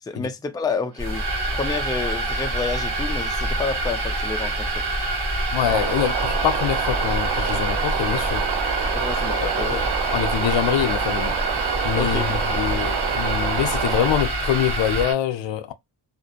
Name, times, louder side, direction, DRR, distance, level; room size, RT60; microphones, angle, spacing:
voice 1, 0.0-1.3 1.5-4.8 8.9-9.8 11.9-12.4, left 4 dB, 10° left, 0.4 m, -29 dB
sound 1, 1.0-15.1, equal, 20° right, 1.3 m, -30 dB
sound 2, 1.0-15.1, right 3 dB, 55° right, 0.9 m, -28 dB
voice 2, 5.5-8.5 9.4-9.8 10.1-11.4 11.8-15.7, left 11 dB, 75° left, 0.5 m, -25 dB
sound 3, 5.6-14.2, right 9 dB, 80° right, 0.5 m, -28 dB
2.5 x 2.1 x 2.6 m
cardioid pair, 60°, 45 cm